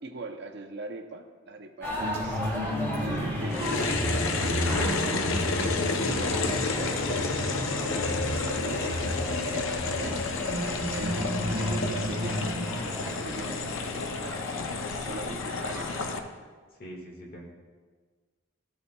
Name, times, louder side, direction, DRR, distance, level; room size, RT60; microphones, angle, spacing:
voice 1, 0.0-2.4 3.0-5.3 6.0-10.3 10.9-12.5 12.7-14.4 14.9-16.1, right 2 dB, 50° right, 5 dB, 0.6 m, -41 dB
sound 1, 1.8-16.2, equal, 10° left, 1.6 m, -37 dB
sound 2, 2.0-12.8, equal, 75° right, 1.0 m, -32 dB
sound 3, 3.5-16.2, left 4 dB, 60° left, 0.5 m, -31 dB
voice 2, 13.0-13.3 15.2-15.6 16.8-17.5, right 1 dB, 45° left, 0 dB, 1.6 m, -43 dB
14.0 x 7.0 x 2.2 m, 1.5 s
head